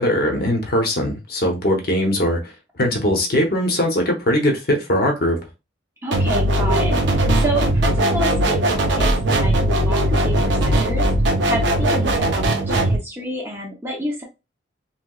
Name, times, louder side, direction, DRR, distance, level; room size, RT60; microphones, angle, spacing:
voice 1, 0.0-2.4 2.8-5.4, equal, 50° left, 0.8 m, -20 dB
voice 2, 6.0-11.1 11.4-14.2, right 1 dB, 10° right, 0.7 m, -29 dB
sound 1, 6.1-13.0, right 1 dB, 70° right, 0.6 m, -19 dB
3.0 x 2.9 x 2.3 m
head